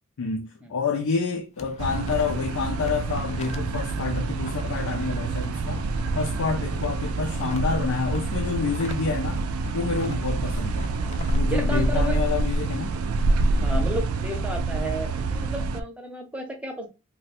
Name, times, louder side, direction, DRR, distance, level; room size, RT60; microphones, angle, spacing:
voice 1, 0.2-5.8 6.1-9.4 9.7-10.9 11.3-13.0, left 5 dB, 90° left, 0.5 m, -28 dB
sound 1, 1.2-2.4 2.7-6.3 6.7-9.1 9.4-11.4, left 3 dB, 30° left, 0.3 m, -41 dB
sound 2, 1.8-15.8, right 3 dB, 85° right, 0.4 m, -27 dB
voice 2, 11.5-12.2 13.6-16.9, equal, 5° right, 0.6 m, -32 dB
2.6 x 2.2 x 4.1 m
head